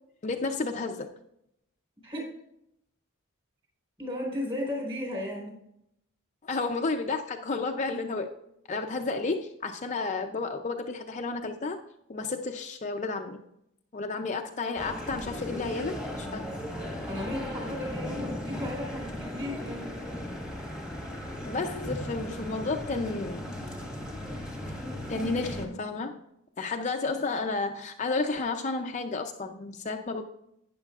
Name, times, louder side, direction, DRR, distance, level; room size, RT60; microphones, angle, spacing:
voice 1, 0.2-1.1 6.4-8.3 8.7-11.8 12.1-13.4 13.9-16.5 21.4-23.5 25.1-26.2 26.6-30.2, left 3 dB, 35° left, 4 dB, 0.5 m, -32 dB
voice 2, 4.0-5.6 16.9-19.9, left 1 dB, 25° right, -1 dB, 4.0 m, -35 dB
sound 1, 14.8-25.7, left 1 dB, 5° right, 1.4 m, -37 dB
12.0 x 9.1 x 2.4 m, 0.78 s
head